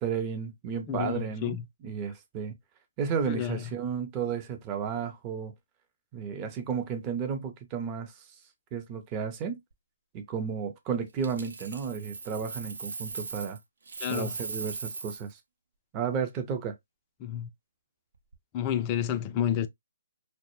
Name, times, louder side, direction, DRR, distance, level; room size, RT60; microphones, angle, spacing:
voice 1, 0.0-2.5 3.0-5.5 6.1-8.1 8.7-9.6 10.1-13.6 14.1-15.4 15.9-16.7, right 6 dB, 25° right, 0.6 m, -33 dB
voice 2, 0.9-1.6 3.3-3.6 14.0-14.3 17.2-17.5 18.5-19.7, left 10 dB, 25° left, 0.3 m, -30 dB
Coin (dropping), 11.2-13.6 13.9-15.3 18.1-18.4, right 4 dB, 65° right, 0.6 m, -39 dB
2.1 x 2.0 x 3.0 m
hypercardioid pair, 145°, 0 cm